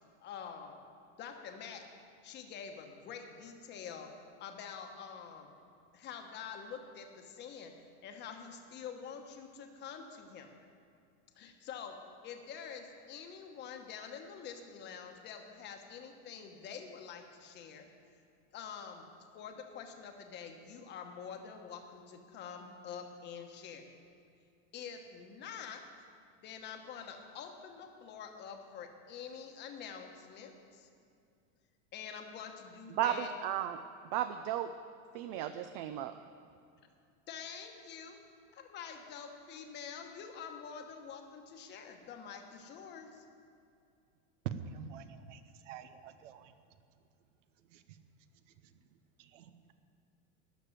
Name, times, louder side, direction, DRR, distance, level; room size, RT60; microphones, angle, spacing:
voice 1, 0.2-0.8 1.2-1.8 2.2-4.1 4.4-5.6 5.9-7.7 8.0-10.5 11.4-12.0 12.2-17.9 18.5-19.0 19.3-23.9 24.7-25.8 26.4-30.9 31.9-33.3 37.3-38.2 38.5-43.2, left 7 dB, 30° left, 4 dB, 1.1 m, -46 dB
voice 2, 33.0-33.8 34.1-34.7 35.1-36.1, right 11 dB, 40° right, 9 dB, 0.4 m, -34 dB
voice 3, 44.5-45.4 45.7-46.4 49.3-49.4, right 4 dB, 85° right, 10 dB, 1.0 m, -46 dB
12.5 x 6.7 x 9.0 m, 2.4 s
supercardioid pair, 155°, 36 cm